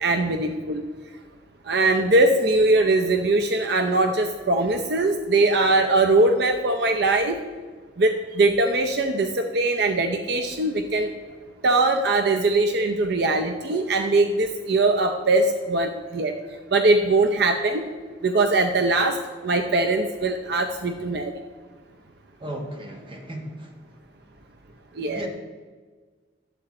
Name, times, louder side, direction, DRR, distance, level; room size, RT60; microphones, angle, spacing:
voice 1, 0.0-0.8 1.7-7.4 8.0-11.1 11.6-16.3 16.7-17.8 18.2-19.2 19.4-21.3 25.0-25.3, right 2 dB, 60° right, 4 dB, 0.6 m, -21 dB
voice 2, 22.4-23.8 25.1-25.3, right 1 dB, 25° right, 2 dB, 1.3 m, -36 dB
11.0 x 7.8 x 4.2 m, 1.5 s
head